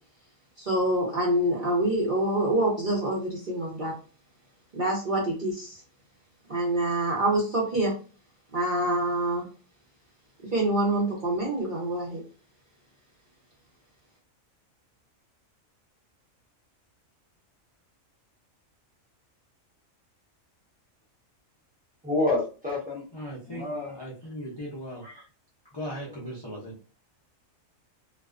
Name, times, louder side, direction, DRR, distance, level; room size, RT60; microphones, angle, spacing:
voice 1, 0.6-3.9 4.7-5.8 6.5-7.9 8.5-9.4 10.5-12.2, right 1 dB, 45° right, 0.7 m, -26 dB
voice 2, 22.0-23.0 23.5-23.9, left 2 dB, 10° right, 0.8 m, -28 dB
voice 3, 23.1-25.3 25.7-26.7, equal, 40° left, 0.3 m, -38 dB
2.4 x 2.2 x 2.4 m
omnidirectional pair, 1.4 m